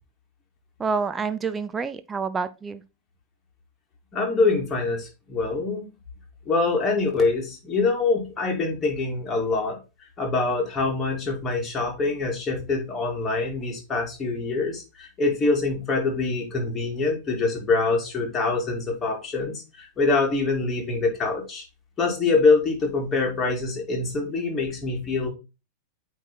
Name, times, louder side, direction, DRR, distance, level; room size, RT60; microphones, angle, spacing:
voice 1, 0.8-2.8, right 5 dB, 15° right, 0.5 m, -28 dB
voice 2, 4.1-5.8 6.5-9.8 10.2-21.6 22.0-25.3, left 3 dB, 20° left, 2.3 m, -24 dB
8.8 x 3.2 x 4.1 m
figure-of-eight pair, 90°, 0 cm